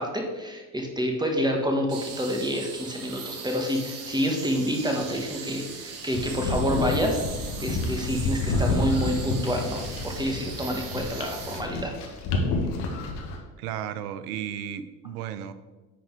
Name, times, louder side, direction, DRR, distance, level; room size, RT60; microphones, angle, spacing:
voice 1, 0.0-7.2 7.6-11.9, equal, 10° right, 1 dB, 1.4 m, -28 dB
sound 1, 1.9-11.6, right 5 dB, 45° right, 1.5 m, -40 dB
sound 2, 6.1-13.4, left 2 dB, 60° left, 1.7 m, -29 dB
voice 2, 13.6-15.5, right 10 dB, 90° right, 13 dB, 0.7 m, -34 dB
10.0 x 3.8 x 4.8 m, 1.2 s
supercardioid pair, 85°, 44 cm